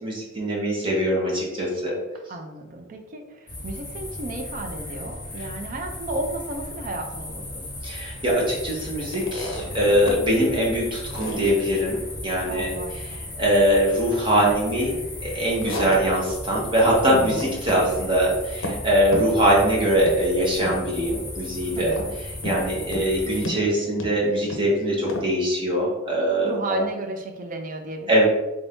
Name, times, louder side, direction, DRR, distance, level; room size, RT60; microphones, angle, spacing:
voice 1, 0.0-2.0 7.8-12.7 13.4-14.9 15.2-21.9 22.4-26.8 28.1-28.2, equal, 25° right, -4 dB, 1.0 m, -22 dB
voice 2, 2.3-7.7 12.5-13.3 17.1-17.5 21.7-22.1 22.6-22.9 26.4-28.2, right 2 dB, 40° right, 4 dB, 0.4 m, -34 dB
sound 1, 3.5-23.5, left 1 dB, 20° left, 1.0 m, -36 dB
sound 2, 9.0-10.2 10.6-10.7 11.1-11.6 15.2-16.5 16.8-17.0 17.3-17.9 18.2-18.8 19.1-19.8 20.1-20.2 20.6-21.1 22.0-22.6 22.9-23.1 23.4-24.7 25.1-25.3, left 1 dB, 70° left, 0.6 m, -33 dB
3.4 x 2.6 x 3.5 m, 1.1 s
head